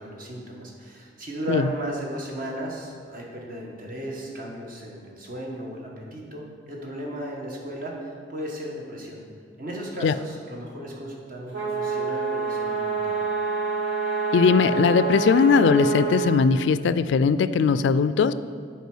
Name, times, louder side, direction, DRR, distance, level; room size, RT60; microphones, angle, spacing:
voice 1, 0.0-9.2 9.6-13.2, right 1 dB, 50° right, -1 dB, 1.4 m, -35 dB
sound 1, 11.5-16.4, right 5 dB, 85° right, 1.8 m, -27 dB
voice 2, 14.3-18.3, left 5 dB, 70° left, 14 dB, 0.3 m, -19 dB
8.2 x 4.5 x 6.2 m, 2.2 s
head